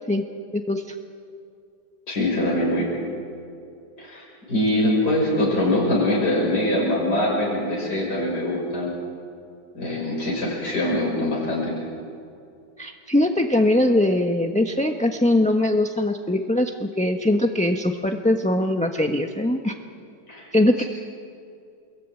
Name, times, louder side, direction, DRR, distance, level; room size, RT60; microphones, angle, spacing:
voice 1, 0.5-0.8 12.8-19.7 20.5-20.8, left 1 dB, 5° left, 4 dB, 1.0 m, -21 dB
voice 2, 2.1-2.9 4.0-8.9 9.7-11.7 20.3-20.5 20.8-20.9, left 1 dB, 65° left, -2 dB, 6.4 m, -23 dB
28.5 x 22.0 x 9.1 m, 2.5 s
omnidirectional pair, 1.9 m